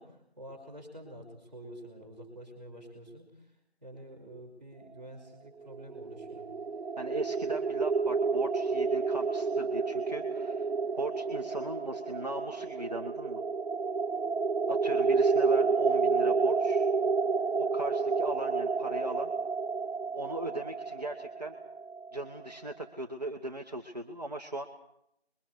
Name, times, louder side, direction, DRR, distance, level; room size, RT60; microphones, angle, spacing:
voice 1, 0.0-3.5 3.8-6.5, right 1 dB, 10° right, -9 dB, 4.3 m, -48 dB
sound 1, 5.7-22.5, right 4 dB, 75° right, 0.8 m, -30 dB
voice 2, 7.0-10.7 11.0-13.4 14.7-16.9 17.6-19.3 20.1-21.6 22.1-24.7, right 2 dB, 40° right, 2 dB, 1.6 m, -38 dB
28.0 x 23.0 x 4.8 m, 0.77 s
figure-of-eight pair, 175°, 32 cm